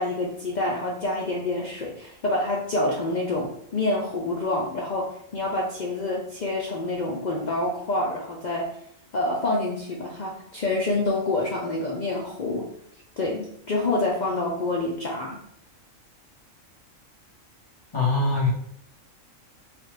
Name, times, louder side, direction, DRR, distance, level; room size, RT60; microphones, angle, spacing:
voice 1, 0.0-8.7 9.1-12.6 13.2-15.4, left 2 dB, 65° left, -3 dB, 0.4 m, -27 dB
voice 2, 17.9-18.5, left 3 dB, 25° left, -5 dB, 1.0 m, -22 dB
3.2 x 2.4 x 3.2 m, 0.70 s
omnidirectional pair, 1.4 m